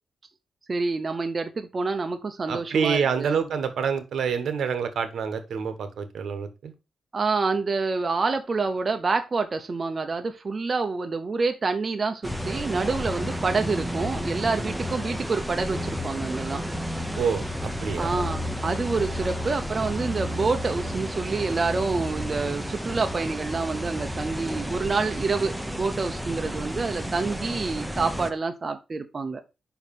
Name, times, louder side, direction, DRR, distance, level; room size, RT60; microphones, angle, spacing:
voice 1, 0.7-3.4 7.1-16.6 18.0-29.4, right 4 dB, 35° right, 6 dB, 0.7 m, -27 dB
voice 2, 2.5-6.7 17.2-18.2, right 6 dB, 75° right, 10 dB, 1.1 m, -27 dB
sound 1, 12.2-28.3, equal, 5° right, 0.7 m, -32 dB
5.4 x 4.7 x 5.2 m, 0.28 s
wide cardioid pair, 120°, 0 cm